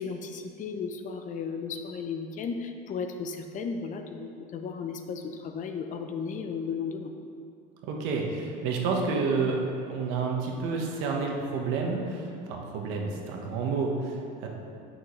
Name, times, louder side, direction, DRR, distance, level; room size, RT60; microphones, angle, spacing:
voice 1, 0.0-7.1, left 5 dB, 40° left, 6 dB, 0.6 m, -35 dB
voice 2, 7.8-9.6 9.9-14.5, right 4 dB, 75° right, 1 dB, 1.2 m, -29 dB
8.2 x 6.0 x 3.2 m, 2.5 s
cardioid pair, 125°, 20 cm